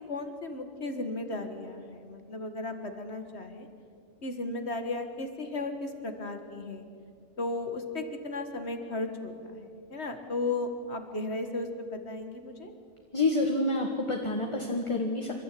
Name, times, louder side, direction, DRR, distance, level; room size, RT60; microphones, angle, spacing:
voice 1, 0.1-3.7 4.2-6.8 7.4-12.7, left 2 dB, 50° left, 6 dB, 1.9 m, -35 dB
voice 2, 13.1-15.3, left 2 dB, 20° left, 1 dB, 1.6 m, -28 dB
28.0 x 13.0 x 8.5 m, 2.4 s
omnidirectional pair, 1.5 m